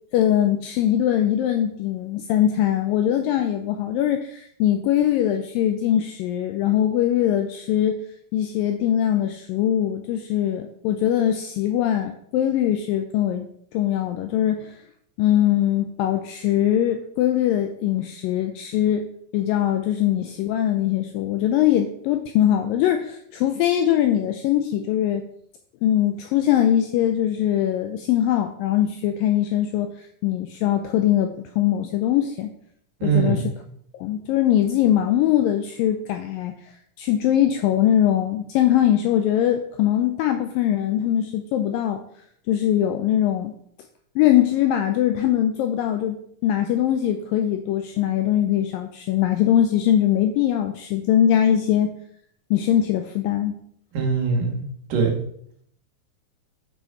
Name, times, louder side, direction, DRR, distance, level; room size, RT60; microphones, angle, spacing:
voice 1, 0.1-8.0 8.3-13.5 13.7-14.8 15.2-19.1 19.3-25.3 25.8-32.5 33.0-33.4 34.0-36.5 37.0-42.0 42.5-43.5 44.2-52.0 52.5-53.5, left 11 dB, 85° left, 7 dB, 2.0 m, -21 dB
voice 2, 33.0-33.5 53.9-54.6 54.9-55.2, right 5 dB, 65° right, 0 dB, 3.0 m, -22 dB
7.3 x 6.4 x 4.5 m, 0.68 s
omnidirectional pair, 4.5 m